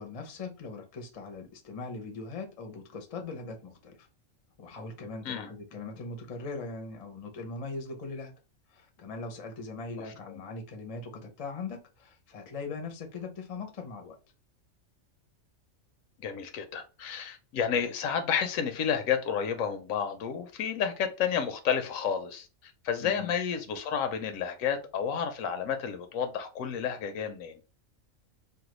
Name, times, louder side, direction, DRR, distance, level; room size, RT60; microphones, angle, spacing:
voice 1, 0.0-4.1 4.6-8.3 8.7-14.2 23.0-23.3, left 3 dB, 40° left, 0.5 m, -40 dB
voice 2, 16.2-27.6, left 7 dB, 85° left, 1.0 m, -31 dB
3.3 x 2.2 x 3.0 m
omnidirectional pair, 1.3 m